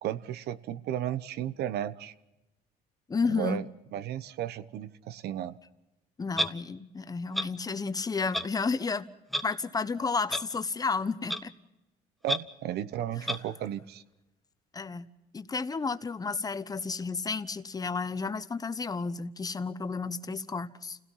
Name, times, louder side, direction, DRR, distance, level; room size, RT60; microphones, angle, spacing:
voice 1, 0.0-2.1 3.2-3.6 3.9-5.6 12.2-14.0, right 11 dB, 75° right, 15 dB, 1.1 m, -34 dB
voice 2, 3.1-3.6 6.2-9.1 9.4-11.5 14.7-15.1 15.3-21.0, left 4 dB, 20° left, 12 dB, 1.1 m, -32 dB
Clock, 6.4-6.5 7.3-7.5 8.3-8.5 9.3-9.4 10.3-10.4 11.3-11.4 12.3-12.4 13.3-13.4, equal, ahead, 1.1 m, -28 dB
29.0 x 17.0 x 5.7 m, 0.96 s
cardioid pair, 110°, 17 cm